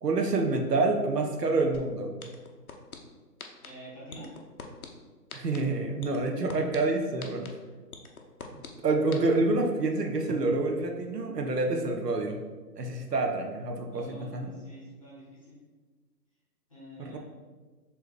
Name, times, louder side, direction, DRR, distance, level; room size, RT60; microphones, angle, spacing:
voice 1, 0.0-2.2 5.3-7.5 8.5-12.4 12.8-14.5 17.0-17.2, right 3 dB, 70° right, 3 dB, 0.8 m, -28 dB
sound 1, 1.7-1.8 2.2-3.0 3.4-3.7 4.1-4.9 5.3-5.6 6.0-6.8 7.2-7.5 7.9-8.7 9.1-9.2, left 6 dB, 60° left, 0.6 m, -41 dB
voice 2, 3.6-4.3 13.9-15.6 16.7-17.2, equal, 20° left, -8 dB, 1.0 m, -47 dB
4.4 x 3.4 x 3.1 m, 1.4 s
figure-of-eight pair, 165°, 50 cm